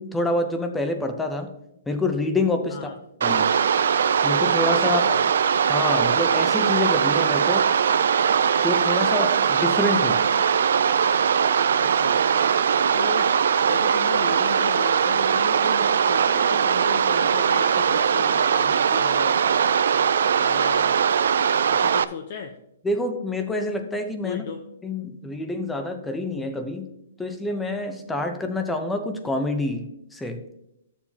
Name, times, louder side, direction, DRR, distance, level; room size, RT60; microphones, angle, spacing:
voice 1, 0.0-1.5 1.9-2.9 3.2-3.5 4.2-5.2 5.7-7.7 8.6-10.2 22.8-24.4 24.8-26.9 27.2-29.8 30.1-30.4, left 2 dB, 5° left, 6 dB, 0.8 m, -27 dB
sound 1, 3.2-22.0, right 7 dB, 75° right, 0.4 m, -20 dB
voice 2, 4.8-5.2 11.8-12.2 12.9-13.3 13.6-19.4 20.4-21.0 21.7-22.6 24.2-24.6 25.4-25.5, left 7 dB, 45° left, 5 dB, 0.7 m, -36 dB
12.5 x 7.2 x 2.8 m, 0.82 s
hypercardioid pair, 160°, 0 cm